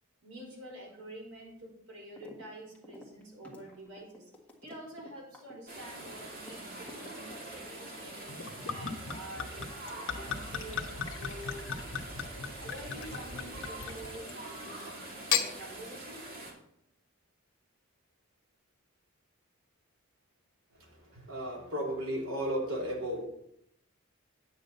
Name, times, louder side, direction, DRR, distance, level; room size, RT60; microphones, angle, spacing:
voice 1, 0.2-4.2 4.6-8.4 8.7-9.7 10.1-11.7 12.6-16.2, right 1 dB, 85° right, -3 dB, 4.4 m, -48 dB
sound 1, 2.2-2.5 2.7-6.5 6.9-7.8, left 2 dB, 5° left, 1.6 m, -51 dB
sound 2, 5.7-16.5, right 2 dB, 40° right, 2.3 m, -44 dB
Gurgling / Chink clink / Liquid, 8.3-14.4 15.1-15.5, left 7 dB, 60° left, 1.2 m, -36 dB
voice 2, 20.8-23.2, equal, 70° right, -2 dB, 3.2 m, -34 dB
9.3 x 8.8 x 4.1 m, 0.76 s
head